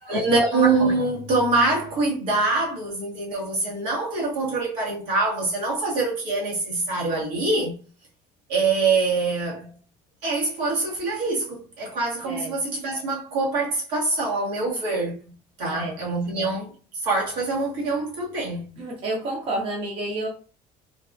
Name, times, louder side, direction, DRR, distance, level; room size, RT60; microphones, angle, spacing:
voice 1, 0.0-7.8 8.5-9.7 10.2-15.2 15.6-16.7 17.0-18.7, right 3 dB, 75° right, 1.5 m, -24 dB
voice 2, 12.2-12.5 15.7-15.9 18.8-20.3, right 2 dB, 35° right, 0.7 m, -29 dB
3.4 x 2.3 x 2.5 m
cardioid pair, 160°, 16 cm